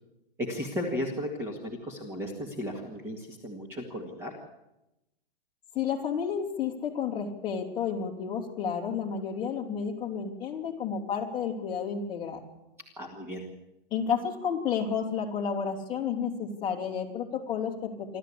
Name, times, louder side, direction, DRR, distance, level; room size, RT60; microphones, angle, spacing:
voice 1, 0.4-4.3 13.0-13.4, equal, 10° right, 1 dB, 1.9 m, -35 dB
voice 2, 5.7-12.4 13.9-18.2, left 7 dB, 15° left, -2 dB, 2.9 m, -31 dB
27.0 x 13.0 x 8.6 m, 0.94 s
hypercardioid pair, 170°, 29 cm